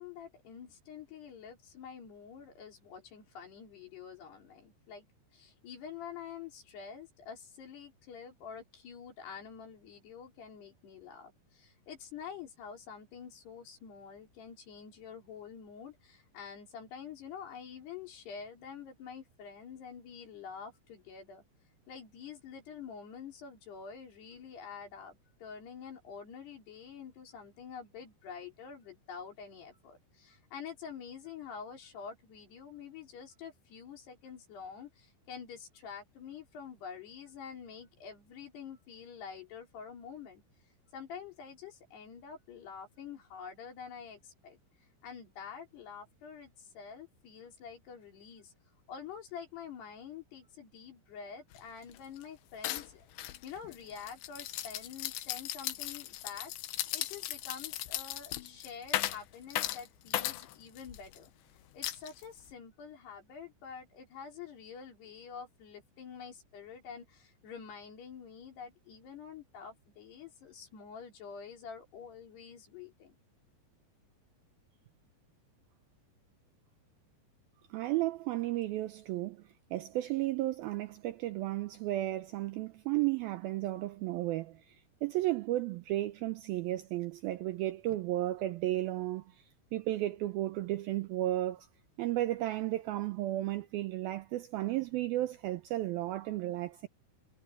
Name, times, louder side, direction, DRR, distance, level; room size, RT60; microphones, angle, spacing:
voice 1, 0.0-5.1 5.3-21.4 21.9-40.4 40.9-44.6 45.0-48.5 48.9-53.1 53.4-61.3 61.7-73.2, left 7 dB, 70° left, 6.3 m, -47 dB
sound 1, 51.5-51.6 51.9-52.2 52.6-61.2 61.8-62.5, left 14 dB, 90° left, 3.3 m, -37 dB
voice 2, 77.7-79.4 79.7-89.4 89.7-91.7 92.0-96.9, right 15 dB, 80° right, 2.2 m, -33 dB
omnidirectional pair, 5.0 m